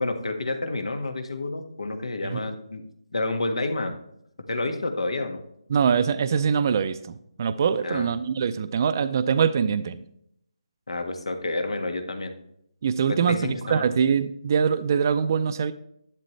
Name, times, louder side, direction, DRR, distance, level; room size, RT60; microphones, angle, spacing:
voice 1, 0.0-2.8 3.1-3.9 4.5-5.4 7.8-8.1 10.9-12.3 13.1-13.9, left 2 dB, 90° left, 6 dB, 1.7 m, -29 dB
voice 2, 5.7-10.0 12.8-15.7, right 6 dB, 35° right, 12 dB, 0.4 m, -23 dB
11.5 x 9.2 x 3.2 m, 0.74 s
hypercardioid pair, 165°, 3 cm